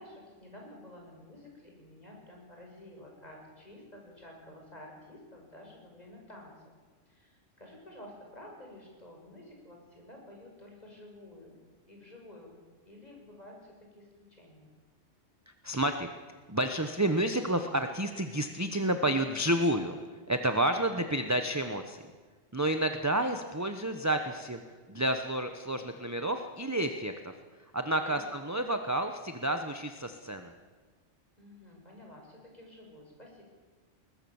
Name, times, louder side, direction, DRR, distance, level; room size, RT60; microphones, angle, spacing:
voice 1, 0.0-6.5 7.1-11.5 11.9-12.5 12.8-14.7 20.6-20.8 28.1-28.2 31.4-33.4, left 1 dB, 35° left, 0 dB, 6.1 m, -51 dB
voice 2, 15.6-16.1 16.5-20.0 20.3-22.0 22.5-24.6 24.9-27.3 27.7-30.5, right 1 dB, 15° right, 6 dB, 1.1 m, -30 dB
21.0 x 21.0 x 7.2 m, 1.4 s
omnidirectional pair, 1.3 m